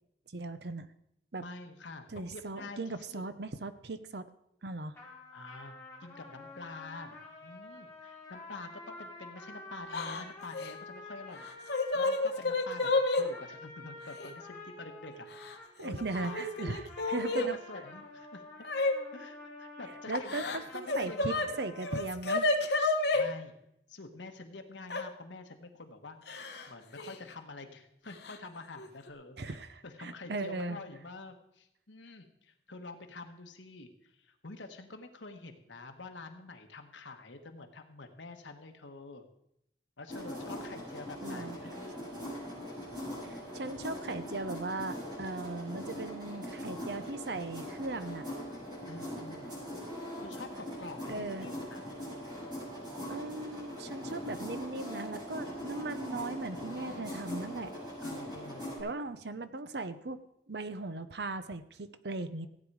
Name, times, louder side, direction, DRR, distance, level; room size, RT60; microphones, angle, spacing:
voice 1, 0.3-0.9 1.3-1.4 2.1-4.3 4.6-4.9 15.8-17.6 20.1-22.5 29.4-30.8 41.2-41.6 43.2-48.2 51.1-51.5 53.1-57.7 58.8-60.2 60.5-62.5, right 3 dB, 65° right, 11 dB, 0.8 m, -38 dB
voice 2, 1.4-3.2 5.3-5.7 6.0-7.2 7.4-11.5 11.9-12.9 13.2-15.5 15.8-16.6 17.2-18.4 19.1-21.6 23.1-23.6 23.9-26.2 26.7-29.6 29.8-33.9 34.2-39.2 40.0-41.9 48.9-49.5 50.2-51.9 56.2-57.1 58.0-58.7, left 3 dB, 85° left, 5 dB, 1.5 m, -47 dB
sound 1, 4.9-22.1, left 2 dB, 15° left, 2.9 m, -49 dB
Yell / Crying sobbing, 9.9-10.2 10.5-10.7 11.4-13.2 14.2-14.3 15.3-15.9 16.2-17.5 18.6-18.9 20.1-21.5 21.8-23.2 24.9-25.0 26.3-26.7 27.0-27.1 28.2-28.4 28.8-29.1, left 2 dB, 65° left, 1.2 m, -30 dB
sound 2, 40.1-58.8, equal, 25° right, 6.1 m, -41 dB
16.0 x 8.9 x 4.8 m, 0.79 s
head